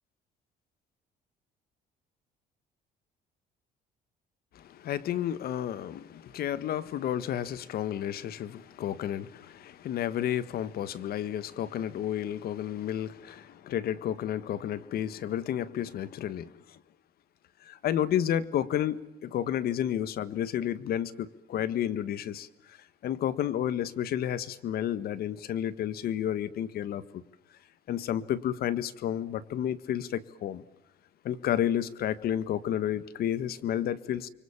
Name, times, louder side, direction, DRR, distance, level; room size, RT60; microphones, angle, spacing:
voice 1, 4.5-16.8 17.6-22.8 23.0-27.0 27.9-30.6 31.2-34.3, left 10 dB, 65° left, 16 dB, 1.6 m, -31 dB
30.0 x 24.5 x 7.3 m, 0.89 s
cardioid pair, 110°, 17 cm